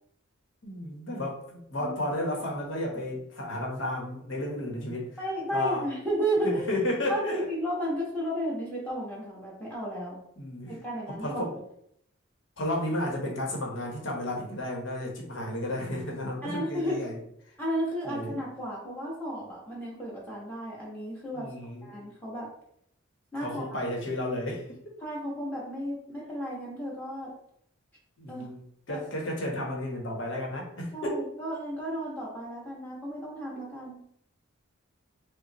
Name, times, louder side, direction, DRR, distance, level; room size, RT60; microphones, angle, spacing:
voice 1, 0.6-5.1 5.5-5.8 6.4-7.5 10.4-10.7 11.1-11.5 12.6-17.2 18.0-18.3 21.3-22.0 23.4-24.9 28.2-31.2, left 1 dB, 60° left, -1 dB, 1.0 m, -32 dB
voice 2, 5.2-6.7 7.1-10.2 10.7-11.5 16.4-17.0 17.6-21.5 21.8-22.5 23.3-23.8 25.0-27.3 28.3-28.5 28.9-29.0 30.9-34.0, right 1 dB, 10° left, -6 dB, 1.3 m, -33 dB
5.2 x 2.1 x 3.0 m, 0.70 s
head